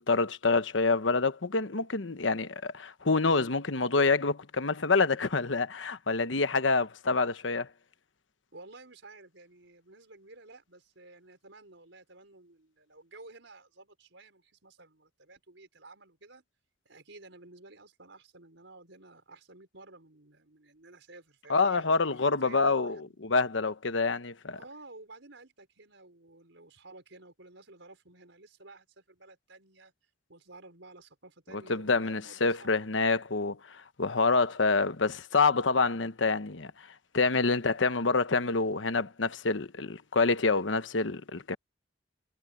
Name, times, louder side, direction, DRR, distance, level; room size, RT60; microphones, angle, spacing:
voice 1, 0.0-7.7 21.5-24.6 31.7-36.7 37.1-41.6, left 4 dB, 90° left, 1.1 m, -27 dB
voice 2, 8.5-16.4 16.8-23.2 24.0-24.1 24.6-29.9 30.3-32.9, right 2 dB, 80° right, 5.0 m, -53 dB
head